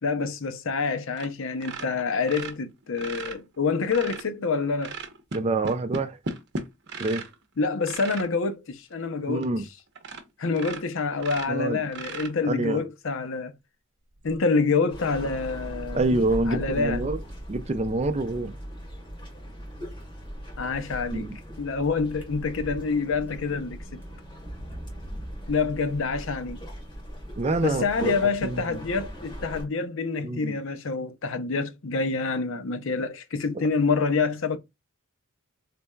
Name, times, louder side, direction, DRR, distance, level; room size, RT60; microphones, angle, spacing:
voice 1, 0.0-5.0 7.6-9.5 10.4-13.5 14.2-16.1 16.5-17.1 20.6-21.3 21.6-24.0 25.5-26.6 27.6-34.6, left 4 dB, 65° left, 0.6 m, -27 dB
sound 1, 1.2-1.3 1.6-4.3 4.8-7.3 7.8-8.3 8.9-9.0 9.4-9.5 10.0-10.3 10.5-12.7 14.2-14.3, right 3 dB, 55° right, 0.8 m, -36 dB
voice 2, 5.3-6.2 7.0-7.2 9.3-9.7 11.5-11.8 12.4-12.8 15.9-17.2 17.5-18.5 21.1-21.4 27.4-28.8 30.2-30.5, right 2 dB, 30° right, 0.5 m, -26 dB
sound 2, 14.9-29.6, equal, 25° left, 2.4 m, -39 dB
sound 3, 22.2-22.8 23.3-23.4 24.0-24.1 24.4-25.6, equal, 10° right, 1.1 m, -39 dB
4.1 x 3.3 x 2.2 m
head